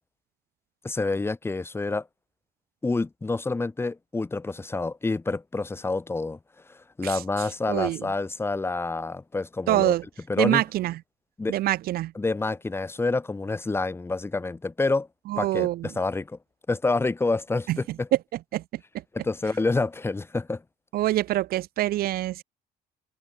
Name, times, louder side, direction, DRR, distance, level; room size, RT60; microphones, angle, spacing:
voice 1, 0.8-2.1 2.8-6.4 6.7-10.0 10.3-10.6 11.4-11.5 12.1-15.1 15.4-16.4 16.7-18.1 19.1-20.6, left 3 dB, 15° left, 0.8 m, -28 dB
voice 2, 7.7-8.1 9.7-10.0 10.4-10.9 11.5-12.1 15.3-15.9 17.7-17.8 18.5-18.6 20.9-22.4, right 15 dB, 65° right, 0.5 m, -25 dB
cardioid pair, 110°, 17 cm